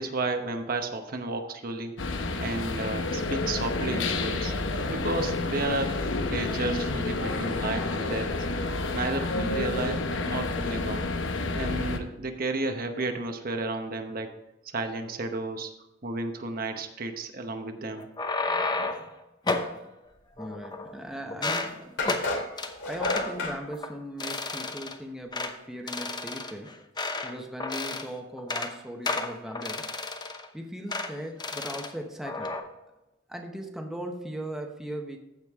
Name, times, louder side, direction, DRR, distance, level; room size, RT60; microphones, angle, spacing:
voice 1, 0.0-1.9 2.4-4.5 4.9-11.1 11.5-14.3 14.7-15.7 16.0-18.1, right 2 dB, 50° right, 5 dB, 0.9 m, -32 dB
sound 1, 2.0-12.0, left 2 dB, 90° left, 0.9 m, -29 dB
sound 2, 18.0-19.1 19.5-19.7 20.4-21.0 21.3-21.7 22.0-22.3 22.6-22.7 23.0-23.3 23.7-23.9 24.2-24.9 25.3-25.5 25.9-27.3 27.6-28.1 28.4-28.7 29.0-30.5 30.9-31.1 31.4-31.9 32.2-32.6, left 3 dB, 25° left, 0.8 m, -31 dB
voice 2, 20.4-22.2 22.8-26.7 27.2-29.9 30.5-32.6 33.3-35.2, equal, ahead, 2 dB, 1.0 m, -38 dB
sound 3, 21.1-21.2 22.0-23.6, left 2 dB, 75° left, 2.7 m, -30 dB
15.0 x 5.3 x 3.6 m, 0.97 s
head